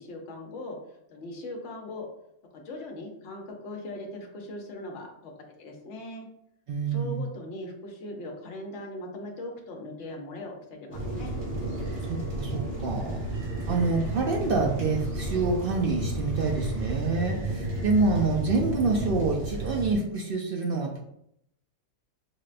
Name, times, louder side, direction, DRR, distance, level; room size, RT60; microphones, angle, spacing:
voice 1, 0.0-2.1 2.5-5.3 5.6-6.3 6.9-11.4, left 1 dB, 65° left, 1 dB, 1.0 m, -39 dB
voice 2, 6.7-7.2 12.1-13.2 13.7-21.0, right 3 dB, 65° right, 0 dB, 0.5 m, -27 dB
sound 1, 10.9-19.9, right 1 dB, 90° right, 1.9 m, -32 dB
sound 2, 11.0-16.9, right 3 dB, 35° left, 0.5 m, -42 dB
5.9 x 2.1 x 2.4 m, 0.75 s
omnidirectional pair, 1.4 m